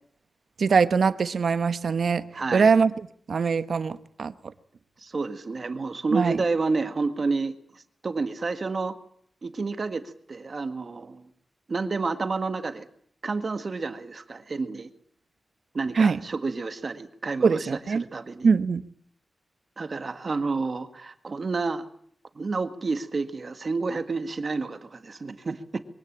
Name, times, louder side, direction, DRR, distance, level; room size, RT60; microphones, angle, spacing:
voice 1, 0.6-4.5 6.1-6.4 15.9-16.2 17.4-18.0 18.4-18.8, right 5 dB, 60° right, 1.0 m, -23 dB
voice 2, 2.3-2.7 5.0-7.6 8.0-9.0 9.4-11.3 11.7-12.9 13.2-14.9 15.7-18.5 19.8-21.8 22.4-25.8, right 3 dB, 40° right, 1.7 m, -30 dB
23.0 x 17.5 x 8.8 m
wide cardioid pair, 160°, 0 cm